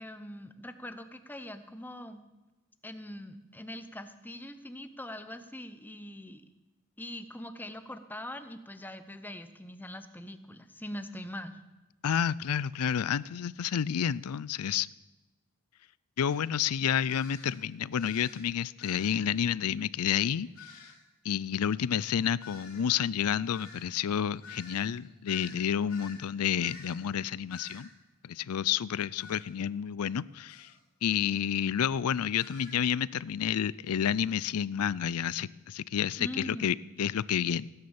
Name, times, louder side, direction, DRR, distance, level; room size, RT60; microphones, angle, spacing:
voice 1, 0.0-2.2 2.8-6.4 7.0-11.6 36.2-36.9, left 1 dB, 10° left, 10 dB, 0.8 m, -42 dB
voice 2, 12.0-14.9 16.2-20.9 21.2-27.9 28.2-30.7 31.0-37.7, left 8 dB, 80° left, 21 dB, 0.4 m, -30 dB
sound 1, 16.3-16.4 17.1-17.6 18.0-18.5 18.8-19.2 20.5-21.0 22.4-26.3 26.6-27.1 27.5-27.9 29.2-29.5 30.5-30.8 32.3-32.8, left 4 dB, 65° left, 3.8 m, -50 dB
17.0 x 9.6 x 7.2 m, 1.1 s
head